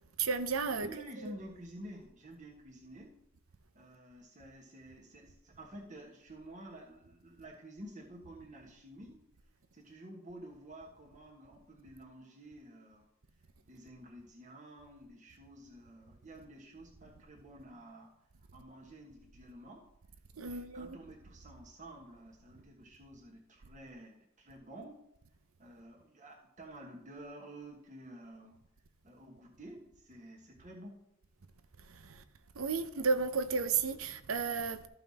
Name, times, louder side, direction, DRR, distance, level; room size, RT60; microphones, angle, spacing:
voice 1, 0.2-0.9 1.2-1.4 20.4-21.0 31.8-32.2 32.5-34.9, right 5 dB, 85° right, 0.8 m, -33 dB
voice 2, 0.8-3.2 3.7-9.2 9.7-13.1 13.6-18.1 18.5-19.9 20.4-25.0 25.6-28.6 29.0-31.1, right 1 dB, 35° right, 1.4 m, -51 dB
13.5 x 5.7 x 4.2 m
head